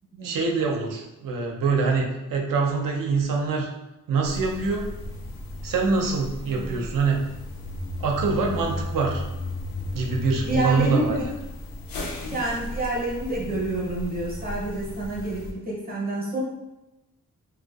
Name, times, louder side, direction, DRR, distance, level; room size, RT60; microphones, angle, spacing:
voice 1, 0.2-3.7 4.1-4.9 5.6-7.2 8.0-9.2 9.9-11.1, right 4 dB, 65° right, 1 dB, 0.5 m, -24 dB
sound 1, 4.2-15.5, left 1 dB, 75° left, 0.5 m, -35 dB
voice 2, 6.5-6.8 8.5-8.8 10.4-11.3 12.3-16.4, right 1 dB, 25° right, -4 dB, 0.7 m, -28 dB
2.5 x 2.1 x 2.3 m, 0.97 s
wide cardioid pair, 150°, 35 cm